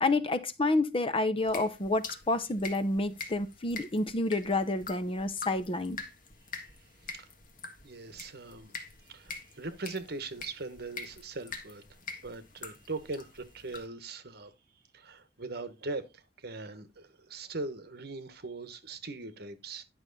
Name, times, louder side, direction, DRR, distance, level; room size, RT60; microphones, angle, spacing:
voice 1, 0.0-6.0, left 2 dB, 30° left, 0.8 m, -29 dB
sound 1, 1.4-13.8, left 4 dB, 50° left, 1.8 m, -45 dB
voice 2, 7.8-8.7 9.1-11.8 12.2-14.5 14.9-16.1 16.4-19.8, right 3 dB, 60° right, 1.3 m, -40 dB
11.0 x 6.1 x 4.0 m
head